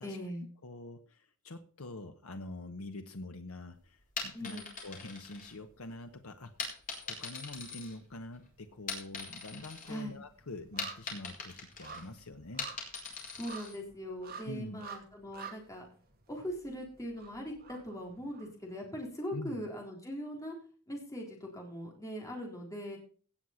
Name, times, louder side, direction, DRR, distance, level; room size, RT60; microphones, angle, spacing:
voice 1, 0.0-0.4 4.3-4.7 9.9-10.2 13.3-15.8 16.3-20.6 20.9-23.0, equal, 15° left, 0 dB, 3.6 m, -41 dB
voice 2, 0.6-6.7 7.0-12.7 14.4-14.8 19.3-19.6, left 2 dB, 85° left, 7 dB, 1.0 m, -45 dB
sound 1, 4.0-6.0 6.6-8.4 8.7-10.0 10.4-13.8, left 4 dB, 40° left, 5.0 m, -41 dB
sound 2, 7.9-8.6 8.9-18.8 19.2-19.3, right 6 dB, 45° right, 2.9 m, -51 dB
17.5 x 6.5 x 5.7 m, 0.41 s
head